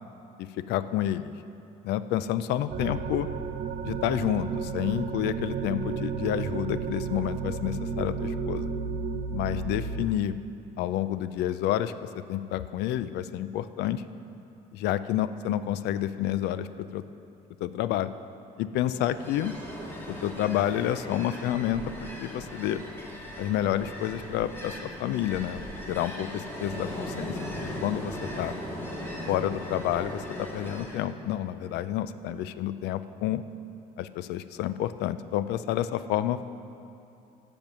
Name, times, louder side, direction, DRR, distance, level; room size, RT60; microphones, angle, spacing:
voice 1, 0.4-1.4 1.8-3.3 3.8-8.7 9.3-10.4 10.8-14.0 14.7-17.0 17.6-18.1 18.6-19.5 20.2-22.8 23.4-27.5 27.8-28.5 29.3-33.4 34.0-36.4, left 12 dB, 80° left, 14 dB, 0.4 m, -29 dB
sound 1, 2.7-10.1, right 5 dB, 45° right, 0.6 m, -32 dB
Ocean, 18.9-31.1, equal, 15° left, 1.7 m, -38 dB
10.5 x 7.1 x 6.1 m, 2.7 s
cardioid pair, 110°, 17 cm